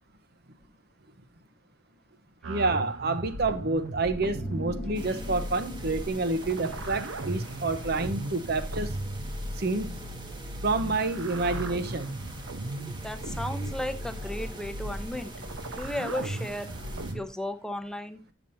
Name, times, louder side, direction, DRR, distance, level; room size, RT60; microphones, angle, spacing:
sound 1, 2.4-17.2, right 1 dB, 85° right, 0.9 m, -37 dB
voice 1, 2.5-8.9 9.6-10.0 10.6-12.1, right 3 dB, 50° right, 0.8 m, -28 dB
sound 2, 4.1-7.2, left 1 dB, 40° left, 1.2 m, -43 dB
sound 3, 4.9-17.1, right 1 dB, 25° right, 1.0 m, -44 dB
voice 2, 12.8-15.3 15.8-16.7 17.1-18.2, left 1 dB, 5° left, 0.7 m, -35 dB
9.0 x 7.0 x 2.7 m
head